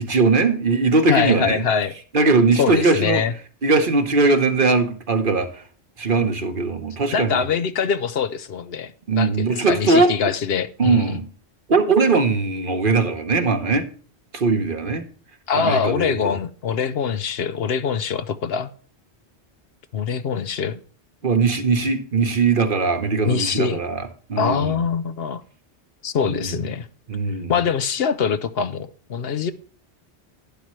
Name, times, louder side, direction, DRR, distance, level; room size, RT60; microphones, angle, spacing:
voice 1, 0.0-1.6 2.1-3.2 3.6-5.6 6.0-7.4 9.1-10.1 10.8-11.3 11.7-13.9 14.3-15.0 15.5-16.3 21.2-24.8 26.2-26.5 27.1-27.5, right 3 dB, 50° right, 1.2 m, -20 dB
voice 2, 1.1-1.9 2.6-3.3 7.1-11.2 15.5-18.7 19.9-20.8 23.2-23.8 24.4-25.4 26.0-26.9 27.5-29.5, left 6 dB, 65° left, 0.9 m, -23 dB
11.5 x 10.0 x 3.1 m
omnidirectional pair, 1.1 m